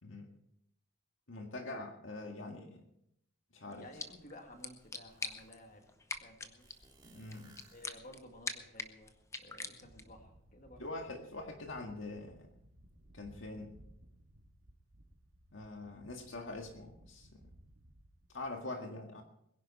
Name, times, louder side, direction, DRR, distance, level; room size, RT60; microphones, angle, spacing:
voice 1, 1.3-2.8 3.5-3.9 7.1-7.6 10.8-12.5 13.1-13.7 15.5-17.5 18.3-19.2, left 2 dB, 70° left, 3 dB, 1.9 m, -44 dB
sound 1, 3.7-10.2, left 3 dB, 15° left, 0.8 m, -46 dB
voice 2, 3.8-5.9 6.2-6.6 7.7-10.8, left 1 dB, 40° left, 3 dB, 2.2 m, -54 dB
sound 2, 4.1-4.2 4.6-5.7 6.6-8.4, right 3 dB, 20° right, 2.2 m, -63 dB
sound 3, 9.8-18.5, right 1 dB, 90° right, 1.9 m, -60 dB
22.0 x 10.5 x 4.3 m, 0.76 s
head